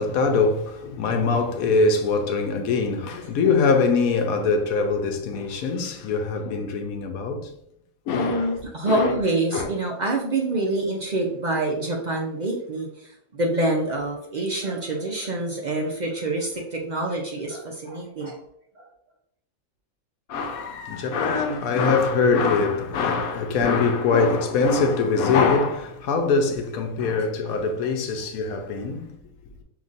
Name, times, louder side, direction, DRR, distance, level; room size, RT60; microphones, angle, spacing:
voice 1, 0.0-7.5 8.1-8.6 8.9-9.2 9.5-9.7 20.3-29.2, left 4 dB, 85° left, 1.1 m, -23 dB
voice 2, 8.1-12.9 13.3-18.4 18.8-18.9, right 2 dB, 55° right, 0.4 m, -26 dB
5.3 x 2.9 x 2.5 m
omnidirectional pair, 1.5 m